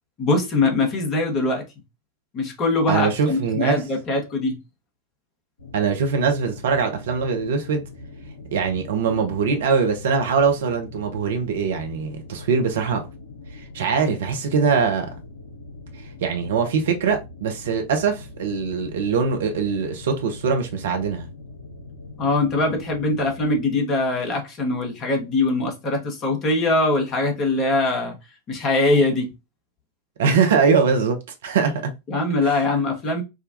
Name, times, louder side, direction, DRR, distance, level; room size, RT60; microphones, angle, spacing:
voice 1, 0.2-1.6 2.3-4.6 22.2-28.2 28.5-29.3 32.1-33.2, left 2 dB, 35° left, 1.1 m, -22 dB
voice 2, 2.9-3.8 5.7-7.8 8.5-13.0 13.5-15.1 16.2-21.3 30.2-31.2 31.4-31.9 32.4-32.6, right 5 dB, 60° right, 0.6 m, -22 dB
sound 1, 5.6-23.6, left 2 dB, 75° left, 0.8 m, -41 dB
4.8 x 2.2 x 2.5 m
figure-of-eight pair, 90°, 0 cm